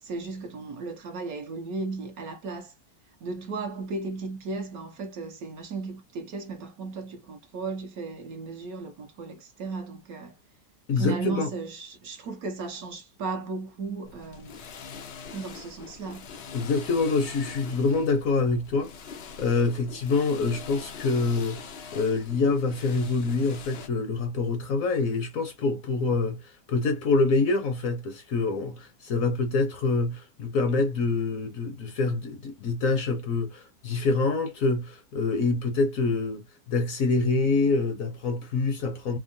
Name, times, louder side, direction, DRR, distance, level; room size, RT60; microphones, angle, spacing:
voice 1, 0.0-2.7 3.2-10.4 10.9-14.6 15.3-16.2, right 3 dB, 65° right, 1.1 m, -35 dB
voice 2, 10.9-11.5 16.5-39.2, left 3 dB, 65° left, 0.9 m, -26 dB
sound 1, 14.0-23.9, left 6 dB, 85° left, 0.5 m, -43 dB
3.6 x 2.0 x 2.5 m
omnidirectional pair, 1.9 m